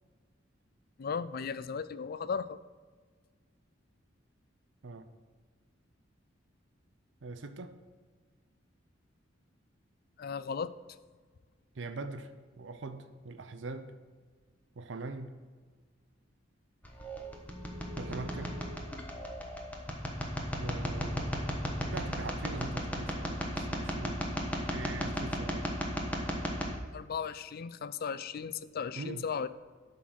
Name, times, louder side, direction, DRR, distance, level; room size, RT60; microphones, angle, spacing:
voice 1, 1.0-2.6 10.2-10.7 26.9-29.5, left 6 dB, 50° left, 15 dB, 0.4 m, -36 dB
voice 2, 7.2-7.8 11.8-12.3 12.6-13.9 14.8-15.3 18.0-18.6 20.6-21.4 21.9-24.2 24.6-25.7 29.0-29.2, right 3 dB, 70° right, 9 dB, 0.6 m, -42 dB
sound 1, 16.8-26.7, equal, 10° left, 1.1 m, -35 dB
11.0 x 3.8 x 6.2 m, 1.5 s
head